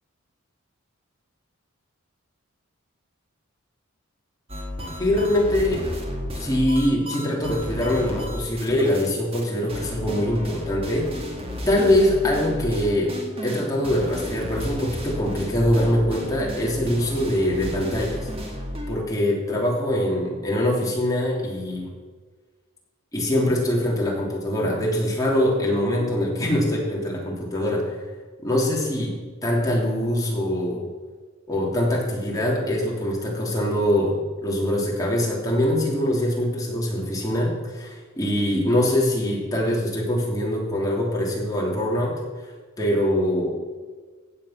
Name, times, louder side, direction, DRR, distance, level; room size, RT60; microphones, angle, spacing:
sound 1, 4.5-9.1 9.3-9.4 9.7-19.0, equal, 30° right, 1.9 m, -33 dB
voice 1, 5.0-5.8 6.3-11.1 11.7-13.1 13.4-18.3 18.9-21.9 23.1-27.9 28.4-29.1 29.4-30.8 31.5-34.2 34.4-42.2 42.8-43.6, left 1 dB, 15° left, -3 dB, 3.1 m, -23 dB
15.5 x 8.9 x 5.8 m, 1.4 s
head